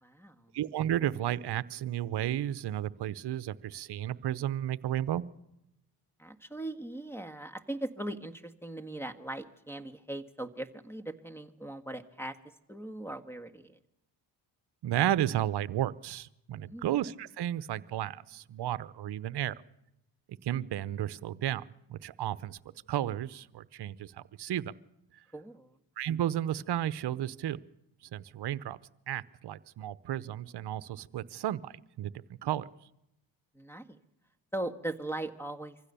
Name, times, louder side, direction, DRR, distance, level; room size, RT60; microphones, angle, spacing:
voice 1, 0.0-0.5 6.2-12.4 12.7-13.8 16.7-16.9 25.3-25.8 33.5-34.0 34.5-35.8, right 1 dB, 5° left, 10 dB, 1.6 m, -39 dB
voice 2, 0.5-5.2 14.8-19.6 20.3-22.6 22.9-24.8 26.0-27.6 28.0-28.8 29.1-32.1 32.4-32.7, right 12 dB, 60° right, 16 dB, 0.9 m, -33 dB
24.5 x 15.5 x 6.9 m, 0.87 s
supercardioid pair, 55°, 45 cm